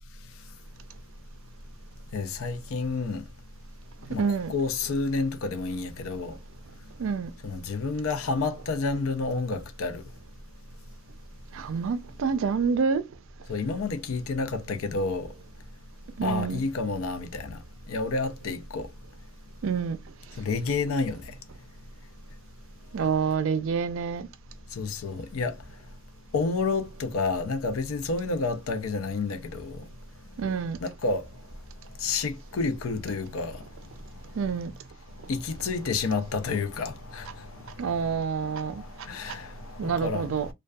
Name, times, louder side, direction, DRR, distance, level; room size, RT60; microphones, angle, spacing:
voice 1, 2.1-3.2 4.1-6.4 7.4-10.0 13.5-15.3 16.2-17.6 17.9-18.9 20.4-21.2 24.7-25.5 26.3-29.8 30.8-31.2 32.0-33.6 35.3-37.5 38.7-39.6 39.8-40.3, left 4 dB, 70° left, 0.5 m, -29 dB
voice 2, 4.2-4.5 7.0-7.3 11.5-13.0 16.2-16.6 19.6-20.0 22.9-24.3 30.4-30.8 34.4-34.7 37.8-38.8 39.8-40.5, right 6 dB, 65° right, 0.4 m, -27 dB
2.5 x 2.2 x 2.2 m
head